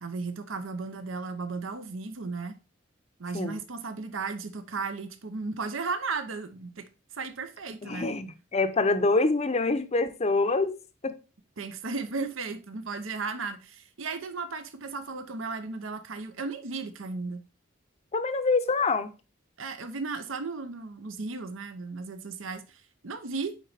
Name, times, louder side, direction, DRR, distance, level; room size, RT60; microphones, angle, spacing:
voice 1, 0.0-2.5 3.2-6.9 7.1-8.1 11.6-17.4 19.6-23.6, right 4 dB, 80° right, 0.8 m, -35 dB
voice 2, 7.8-10.8 11.0-11.1 18.1-19.1, left 3 dB, 35° left, 0.6 m, -25 dB
9.2 x 4.0 x 3.4 m
head